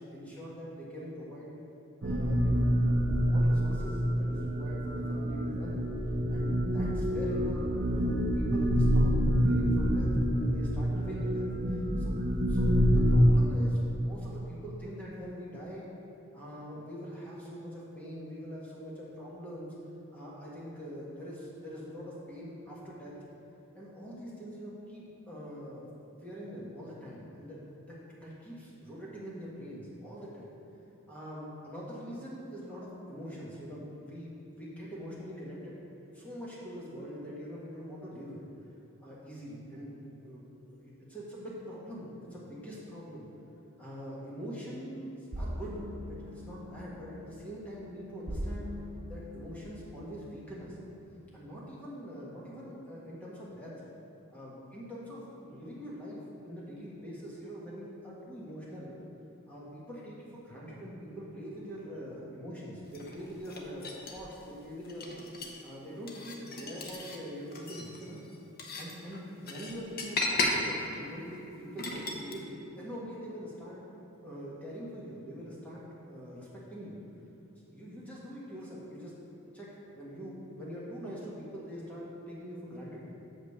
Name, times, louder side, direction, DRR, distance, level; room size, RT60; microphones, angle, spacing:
voice 1, 0.0-1.6 2.0-5.8 6.3-9.1 9.4-12.2 12.5-15.9 16.3-19.7 20.1-23.1 23.7-25.8 26.2-27.6 27.8-27.9 28.2-30.5 31.1-35.8 36.1-38.4 39.0-39.9 40.2-40.4 40.7-43.2 43.8-45.8 46.1-48.7 49.1-50.8 51.3-53.7 54.3-59.0 59.5-65.1 65.6-68.2 68.8-73.8 74.2-77.0 77.7-79.1 79.5-83.1, equal, 5° left, -7 dB, 1.6 m, -43 dB
sound 1, 2.0-13.3, equal, 40° right, 0.6 m, -27 dB
sound 2, 45.3-51.0, equal, 70° right, 0.9 m, -42 dB
sound 3, 62.9-64.4 64.8-65.6 66.1-67.2 67.5-72.3, left 2 dB, 40° left, 0.8 m, -36 dB
6.4 x 5.4 x 6.6 m, 2.9 s
head